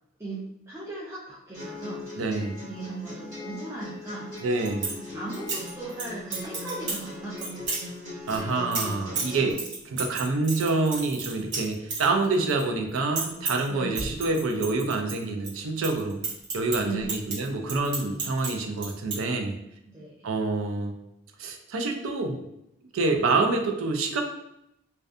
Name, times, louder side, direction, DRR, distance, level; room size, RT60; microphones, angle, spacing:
voice 1, 0.7-2.1 2.7-4.4 4.8-8.0 13.7-14.1 16.8-17.2 19.8-20.3, right 3 dB, 15° right, -7 dB, 0.4 m, -38 dB
sound 1, 1.5-9.5, left 2 dB, 40° right, 1.3 m, -40 dB
voice 2, 2.2-2.6 4.4-5.0 8.3-9.6 9.9-16.2 16.5-19.5 20.2-21.0 21.4-22.4 22.9-24.2, right 3 dB, 85° right, 4 dB, 0.4 m, -27 dB
sound 2, 4.4-5.0 5.3-6.0 6.3-7.0 7.4-7.8 8.3-12.6 12.9-13.7 14.0-15.5 15.8-18.5 18.8-19.2, right 4 dB, 60° right, 0.8 m, -32 dB
2.6 x 2.2 x 2.4 m, 0.80 s
head